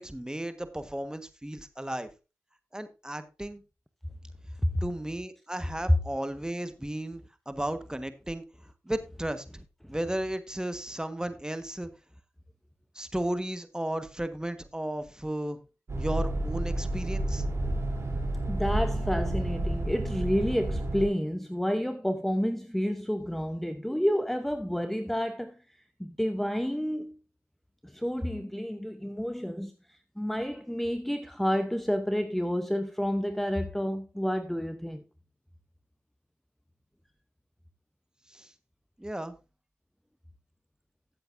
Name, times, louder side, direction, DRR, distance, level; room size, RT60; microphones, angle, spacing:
voice 1, 0.0-2.1 2.7-3.6 4.8-8.4 8.8-9.4 9.9-11.9 12.9-15.6 16.0-17.4 38.3-38.5 39.0-39.3, right 1 dB, 10° right, 1.3 m, -34 dB
sound 1, 15.9-21.1, right 1 dB, 55° right, 3.2 m, -30 dB
voice 2, 18.5-25.6 26.0-27.1 27.8-35.0, equal, 5° left, 0.8 m, -30 dB
14.0 x 7.8 x 2.6 m
cardioid pair, 40°, 6 cm